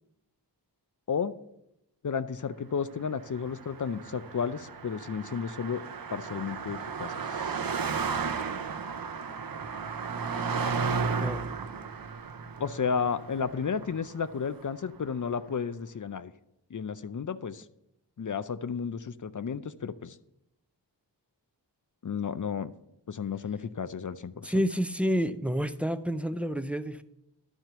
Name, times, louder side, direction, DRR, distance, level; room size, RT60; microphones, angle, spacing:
voice 1, 2.0-5.8 6.1-7.5 12.6-16.3 16.7-17.6 18.2-20.2 22.0-22.7 23.1-24.6, left 6 dB, 45° left, 13 dB, 0.5 m, -32 dB
Car passing by, 3.2-14.7, right 5 dB, 55° right, 0.7 m, -34 dB
voice 2, 24.4-27.0, equal, 5° right, 12 dB, 0.4 m, -29 dB
11.5 x 4.5 x 6.7 m, 0.84 s
wide cardioid pair, 75°, 43 cm